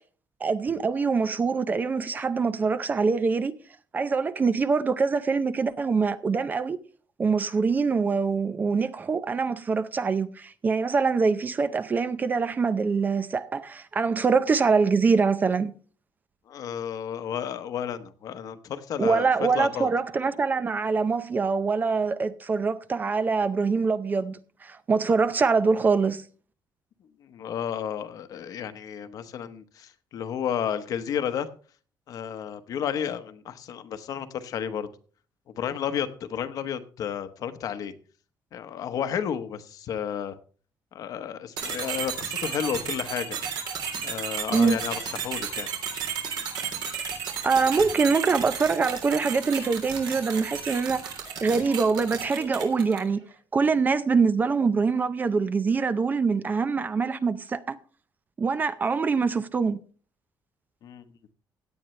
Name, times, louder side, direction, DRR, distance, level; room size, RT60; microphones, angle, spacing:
voice 1, 0.4-3.5 3.9-6.8 7.2-15.7 19.0-26.2 44.5-44.8 47.4-51.1 51.4-53.2 53.5-57.8 58.4-59.8, right 4 dB, 25° right, 0.5 m, -24 dB
voice 2, 16.5-19.9 27.2-31.5 32.1-34.9 35.6-37.9 38.5-40.4 40.9-43.4 44.0-45.7 60.8-61.0, left 8 dB, 55° left, 1.1 m, -32 dB
sound 1, 41.6-53.1, right 7 dB, 75° right, 3.5 m, -33 dB
17.0 x 10.0 x 3.2 m
cardioid pair, 170°, 7 cm